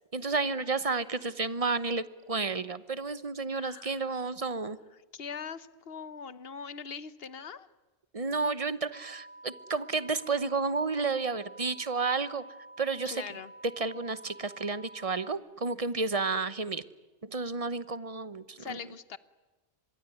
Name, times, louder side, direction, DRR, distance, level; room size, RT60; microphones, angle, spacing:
voice 1, 0.1-4.8 8.1-12.4 12.8-13.2 13.8-16.8 17.2-18.8, right 4 dB, 35° right, 15 dB, 1.0 m, -31 dB
voice 2, 3.5-3.9 5.1-7.7 13.0-13.5 18.6-19.2, left 6 dB, 65° left, 16 dB, 1.3 m, -41 dB
sound 1, 8.9-15.4, right 2 dB, 50° right, 2.2 m, -50 dB
25.5 x 22.5 x 9.5 m, 1.2 s
omnidirectional pair, 1.1 m